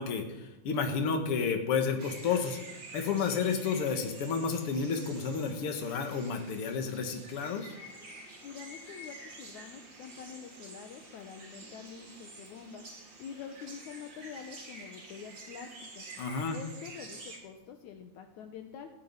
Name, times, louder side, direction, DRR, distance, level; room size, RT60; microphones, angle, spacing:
voice 1, 0.0-2.6 2.9-7.7 16.2-16.6, left 5 dB, 50° left, 4 dB, 2.3 m, -31 dB
sound 1, 2.0-17.4, right 2 dB, 35° right, 3.5 m, -49 dB
voice 2, 8.4-12.8 13.2-16.1 16.5-18.9, left 7 dB, 70° left, 5 dB, 2.3 m, -46 dB
15.5 x 7.6 x 9.6 m, 0.98 s
omnidirectional pair, 3.7 m